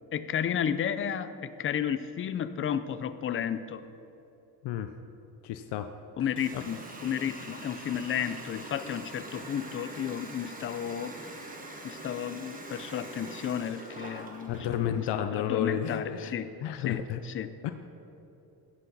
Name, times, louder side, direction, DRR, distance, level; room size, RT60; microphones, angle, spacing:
voice 1, 0.1-3.8 6.2-11.2 11.8-16.5 16.8-17.5, left 9 dB, 35° left, 13 dB, 0.4 m, -33 dB
voice 2, 5.4-5.9 6.5-6.6 14.5-16.3 16.6-17.2 17.6-17.7, left 10 dB, 85° left, 8 dB, 0.7 m, -31 dB
Water tap faucet, 6.4-14.9, right 1 dB, 20° right, 1.4 m, -43 dB
17.5 x 8.1 x 4.0 m, 3.0 s
cardioid pair, 150°, 40 cm